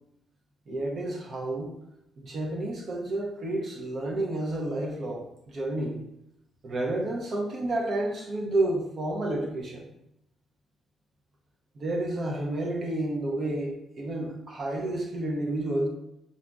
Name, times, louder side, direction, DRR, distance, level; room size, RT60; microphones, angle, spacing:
voice 1, 0.7-1.7 2.2-6.0 6.6-9.9 11.8-15.9, right 1 dB, 50° right, -1 dB, 0.6 m, -30 dB
4.0 x 2.4 x 2.2 m, 0.82 s
cardioid pair, 90°, 0 cm